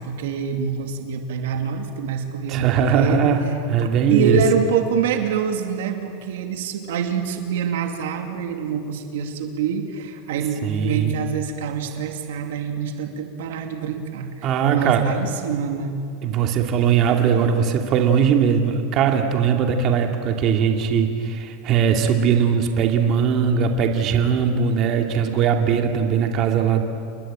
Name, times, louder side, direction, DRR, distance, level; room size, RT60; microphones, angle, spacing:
voice 1, 0.0-3.3 3.8-16.0, right 6 dB, 85° right, 5 dB, 2.6 m, -26 dB
voice 2, 2.5-3.4 3.7-4.4 10.6-11.1 14.4-15.1 16.2-26.8, right 7 dB, 45° right, 3 dB, 2.6 m, -20 dB
29.5 x 20.0 x 9.0 m, 2.3 s
supercardioid pair, 135°, 0 cm